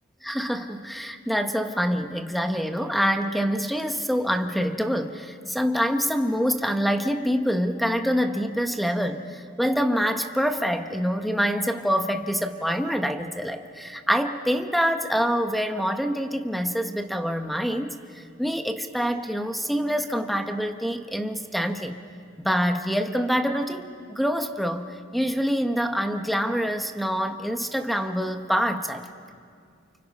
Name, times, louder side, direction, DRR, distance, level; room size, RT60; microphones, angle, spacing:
voice 1, 0.2-18.0 18.4-21.9 22.4-29.1, equal, ahead, 6 dB, 1.2 m, -26 dB
29.5 x 29.0 x 5.5 m, 2.2 s
head